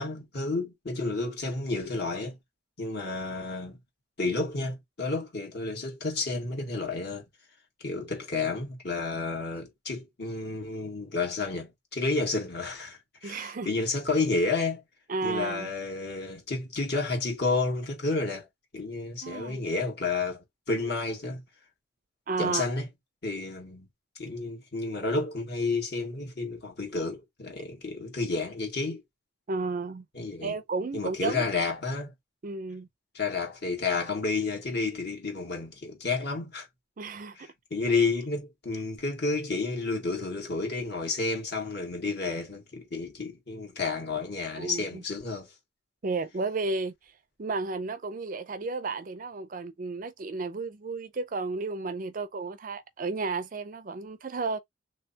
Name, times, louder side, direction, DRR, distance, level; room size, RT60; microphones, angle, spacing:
voice 1, 0.0-2.4 2.8-3.8 4.2-7.3 7.8-14.8 15.2-18.5 18.7-21.4 22.4-22.9 23.2-23.9 24.2-29.0 30.1-30.6 30.9-32.1 33.1-36.7 37.4-45.5, left 3 dB, 55° left, 1.6 m, -31 dB
voice 2, 13.2-13.7 15.1-15.7 19.2-19.6 22.3-22.6 29.5-30.0 30.4-31.4 32.4-32.9 37.0-37.5 37.8-37.9 44.5-45.0 46.0-46.9 47.4-54.6, right 3 dB, 40° right, 0.4 m, -33 dB
3.3 x 3.2 x 2.7 m
head